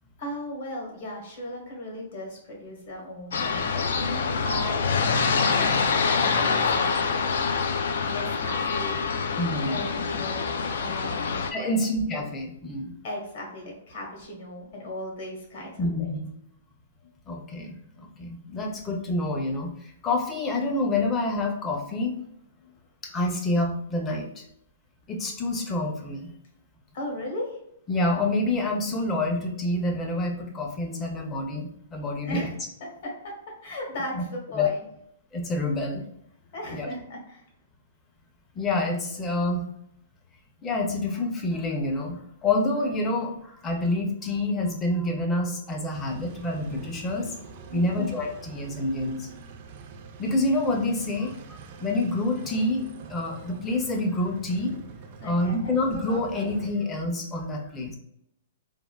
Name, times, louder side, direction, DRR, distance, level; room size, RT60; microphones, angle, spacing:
voice 1, 0.2-7.0 8.0-9.1 9.7-11.8 13.0-16.1 26.9-27.6 32.3-32.5 32.8-33.1 33.6-34.8 36.5-37.4 47.7-48.0 55.2-55.7, equal, 55° left, 0 dB, 1.1 m, -37 dB
sound 1, 3.3-11.5, left 5 dB, 75° left, 0.3 m, -25 dB
voice 2, 9.4-9.8 11.5-12.9 15.8-16.3 17.3-19.7 20.0-22.3 23.0-24.3 25.1-26.3 27.9-32.5 34.1-34.2 34.5-34.7 35.3-36.0 36.7-36.9 38.6-39.7 40.6-47.4 47.7-49.3 50.2-54.8 55.2-57.9, left 2 dB, 15° left, 2 dB, 0.5 m, -27 dB
sound 2, 45.9-56.7, right 5 dB, 45° right, 0.3 m, -44 dB
3.4 x 2.2 x 2.3 m, 0.77 s
hypercardioid pair, 155°, 0 cm